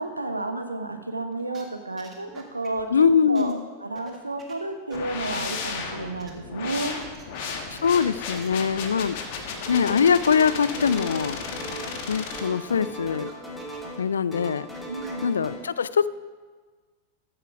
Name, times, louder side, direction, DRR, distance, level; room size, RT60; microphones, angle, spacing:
voice 1, 0.0-7.0 14.9-15.3, right 2 dB, 85° right, 8 dB, 0.8 m, -32 dB
sound 1, 1.3-1.6 2.0-3.0 3.3-3.5 3.8-4.6 4.9-5.0 5.4-5.5 6.2-6.3 6.6-8.5 9.5-9.6 9.8-9.9 10.2-10.3 10.5-10.6 10.8-10.9 11.4-11.5 12.1-12.2 12.5-13.3 13.6-14.0 14.3-14.5 14.7-15.1, right 6 dB, 25° right, 1.8 m, -48 dB
voice 2, 2.9-3.7 7.7-9.2 9.7-11.5 12.1-13.3 14.0-14.7 15.2-16.1, left 6 dB, 70° left, 17 dB, 0.3 m, -22 dB
sound 2, 4.9-12.4, left 5 dB, 50° left, 1.4 m, -34 dB
sound 3, 9.7-10.1 10.3-12.0 12.3-14.0 14.3-15.6, right 1 dB, 10° left, 2.5 m, -38 dB
14.0 x 7.8 x 4.8 m, 1.4 s
figure-of-eight pair, 90°, 0 cm